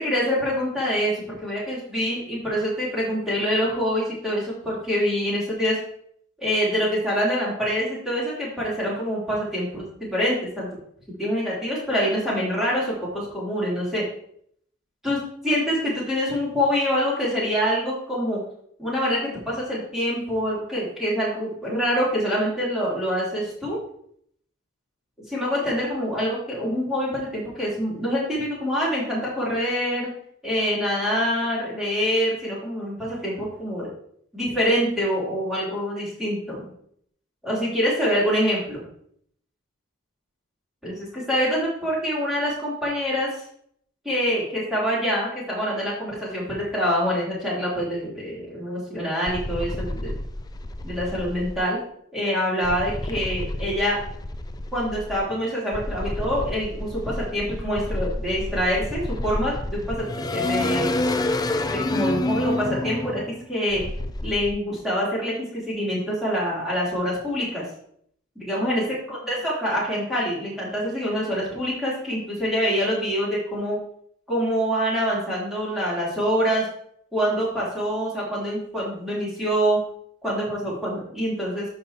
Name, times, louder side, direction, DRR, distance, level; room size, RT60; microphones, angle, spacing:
voice 1, 0.0-5.8 6.4-10.7 11.2-14.0 15.0-15.2 15.4-18.4 18.8-23.8 25.3-30.1 30.4-33.9 34.3-36.6 37.4-38.8 40.8-43.3 44.0-50.1 50.8-51.8 52.1-54.0 54.7-60.9 61.7-63.2 63.5-63.8 64.2-67.6 68.3-73.8 74.3-76.7 77.1-79.8 80.2-81.7, equal, ahead, -8 dB, 3.4 m, -25 dB
sound 1, 49.3-51.6 52.6-55.2 55.7-64.5, left 2 dB, 20° left, 0.4 m, -29 dB
11.5 x 5.5 x 3.0 m, 0.67 s
head